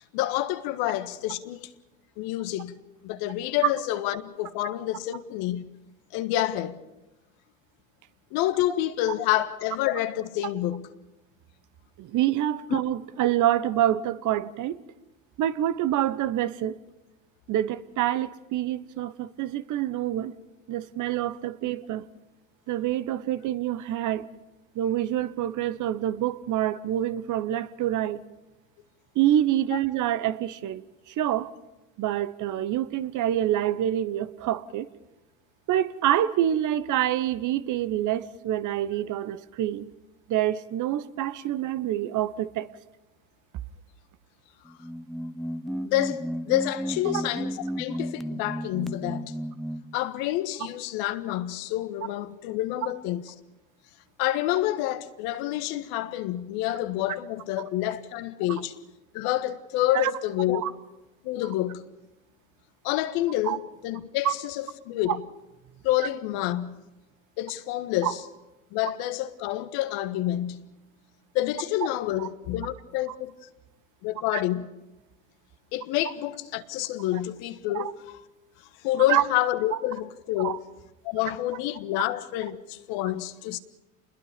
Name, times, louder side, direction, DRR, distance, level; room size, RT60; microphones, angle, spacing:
voice 1, 0.0-1.7 2.2-2.8 3.0-5.6 6.1-6.8 8.3-10.9 12.7-12.8 45.8-49.4 49.9-53.2 54.2-58.8 59.1-60.6 61.2-61.8 62.8-65.2 65.8-66.8 67.4-68.2 68.7-70.7 71.3-73.3 74.0-74.7 75.7-77.9 78.8-80.6 81.0-83.6, left 14 dB, 60° left, 1.5 m, -28 dB
voice 2, 12.0-14.8 15.4-16.8 17.5-20.3 20.7-22.1 22.7-24.3 24.7-28.2 29.1-31.5 32.0-34.9 35.7-39.9 40.3-42.7 59.9-60.1 60.5-60.7 63.4-63.6 64.2-64.3 65.1-65.2 68.0-68.1 72.2-72.3 74.3-74.4 77.1-77.2 77.7-77.9 79.1-79.2 80.4-80.6, right 12 dB, 45° right, 1.2 m, -26 dB
sound 1, 44.7-50.0, equal, ahead, 0.7 m, -33 dB
28.5 x 21.5 x 5.2 m
hypercardioid pair, 80°, 41 cm